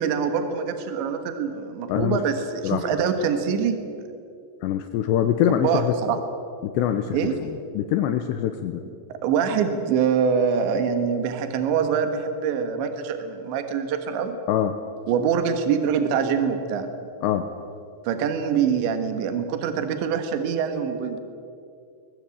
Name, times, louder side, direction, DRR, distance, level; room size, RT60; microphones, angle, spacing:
voice 1, 0.0-3.8 5.5-6.2 7.1-7.4 9.1-14.4 15.1-16.9 18.1-21.2, right 6 dB, 75° right, 7 dB, 3.7 m, -24 dB
voice 2, 4.6-5.9 6.7-8.8 14.5-14.7 17.2-17.5, left 10 dB, 75° left, 8 dB, 2.9 m, -24 dB
22.5 x 20.5 x 8.6 m, 2.4 s
omnidirectional pair, 5.4 m